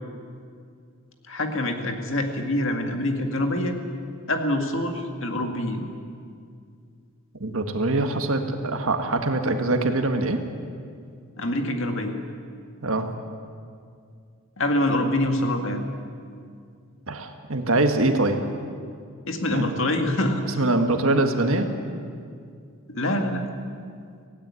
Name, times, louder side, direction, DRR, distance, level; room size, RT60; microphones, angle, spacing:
voice 1, 1.3-3.8 4.3-5.9 11.4-12.2 14.6-15.8 19.3-20.6 22.9-23.4, left 1 dB, 60° left, 4 dB, 2.0 m, -25 dB
voice 2, 7.4-10.4 12.8-13.1 17.1-18.4 19.5-19.7 20.6-21.7, right 2 dB, 70° right, 6 dB, 1.7 m, -23 dB
17.0 x 16.5 x 9.7 m, 2.3 s
head